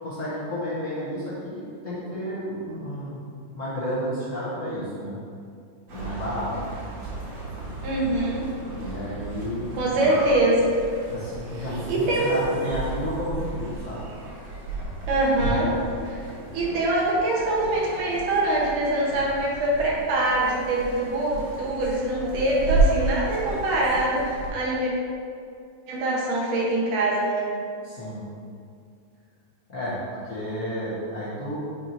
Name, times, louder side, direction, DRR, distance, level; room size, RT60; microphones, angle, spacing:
voice 1, 0.0-3.2 3.5-5.2 5.9-6.5 8.8-10.1 11.1-14.0 27.8-28.2 29.7-31.6, equal, 60° left, -10 dB, 0.8 m, -31 dB
sound 1, 5.9-24.5, right 2 dB, 60° right, 2.3 m, -32 dB
voice 2, 7.8-8.5 9.8-10.6 11.9-12.4 15.1-15.7 16.1-16.2 16.5-24.9 25.9-27.5, right 2 dB, 80° right, -4 dB, 2.7 m, -24 dB
9.1 x 4.4 x 2.7 m, 2.3 s
omnidirectional pair, 3.6 m